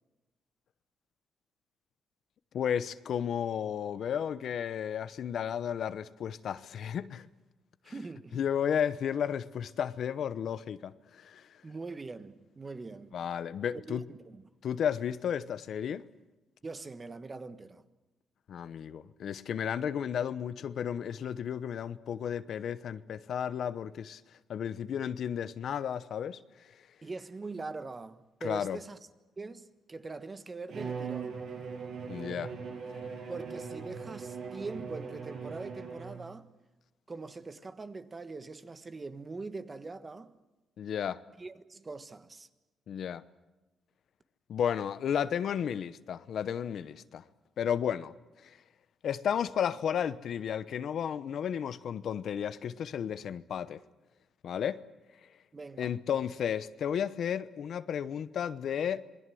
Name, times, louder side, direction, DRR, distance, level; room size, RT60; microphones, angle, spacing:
voice 1, 2.5-7.3 8.3-11.4 13.1-14.0 14.6-16.0 18.5-24.2 24.5-26.4 28.4-28.8 32.1-32.5 40.8-41.2 42.9-43.2 44.5-47.2 47.6-48.1 49.0-53.8 54.4-54.8 55.8-59.0, left 8 dB, 65° left, 0.9 m, -33 dB
voice 2, 7.8-8.4 11.6-13.2 13.7-14.4 16.6-17.8 27.0-29.0 29.4-31.4 33.3-36.5 37.1-40.3 41.4-42.5 55.5-56.0, right 3 dB, 25° right, 1.4 m, -42 dB
Bowed string instrument, 30.7-36.3, right 5 dB, 70° right, 7.3 m, -40 dB
27.0 x 20.5 x 7.8 m
cardioid pair, 105°, 0 cm